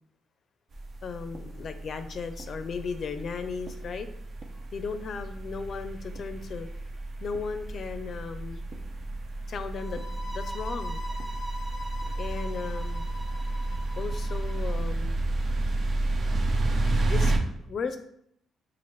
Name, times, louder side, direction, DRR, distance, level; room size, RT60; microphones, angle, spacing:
sound 1, 0.7-17.4, right 2 dB, 50° right, 0.5 m, -31 dB
voice 1, 1.0-4.1 4.7-6.7 7.2-8.6 9.5-11.0 12.2-13.0 14.0-15.2 17.1-18.0, left 5 dB, 55° left, 9 dB, 0.4 m, -36 dB
sound 2, 9.7-14.7, left 1 dB, 25° right, 1.0 m, -41 dB
5.7 x 2.4 x 3.1 m, 0.71 s
cardioid pair, 90°, 0 cm